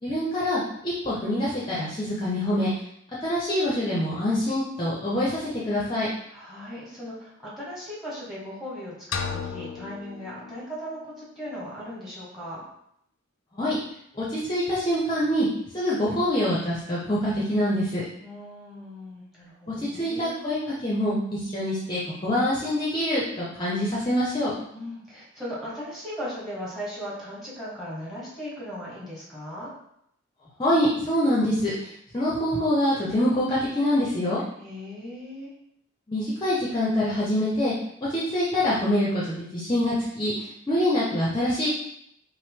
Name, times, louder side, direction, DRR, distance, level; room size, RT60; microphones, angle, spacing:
voice 1, 0.0-2.7 3.2-6.1 13.5-13.8 14.2-15.5 15.7-18.0 19.7-24.5 30.6-34.4 36.1-37.7 38.1-41.7, left 1 dB, 25° left, -6 dB, 0.8 m, -25 dB
voice 2, 6.3-12.6 18.2-20.4 24.7-29.7 34.6-35.5, equal, ahead, -6 dB, 1.5 m, -38 dB
sound 1, 9.1-11.1, left 6 dB, 85° left, 0.5 m, -34 dB
5.6 x 2.2 x 3.6 m, 0.73 s
head